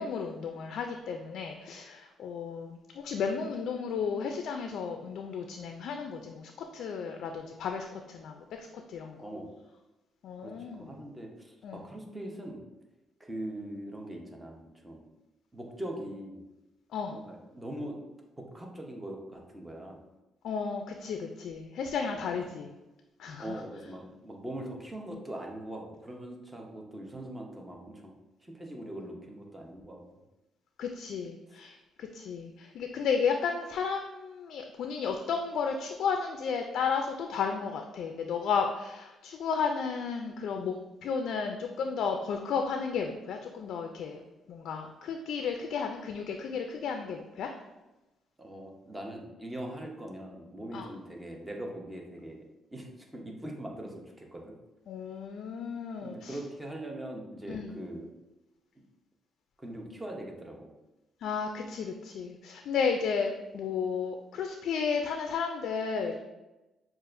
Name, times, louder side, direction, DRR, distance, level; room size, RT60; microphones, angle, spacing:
voice 1, 0.0-9.2 10.2-10.9 11.6-11.8 16.9-17.2 20.4-22.7 23.2-23.6 30.8-40.8 41.0-44.2 44.5-47.5 50.7-50.9 54.9-56.4 57.5-57.8 61.2-66.2, left 6 dB, 75° left, 4 dB, 0.3 m, -33 dB
voice 2, 9.2-9.5 10.4-12.6 13.2-15.0 15.5-16.4 17.1-18.0 18.4-20.0 23.4-28.1 28.4-30.0 31.5-31.6 48.4-52.4 52.7-54.5 56.0-58.1 59.6-60.7, right 1 dB, 15° right, 0 dB, 0.8 m, -41 dB
6.3 x 2.4 x 2.5 m, 1.0 s
cardioid pair, 90°, 0 cm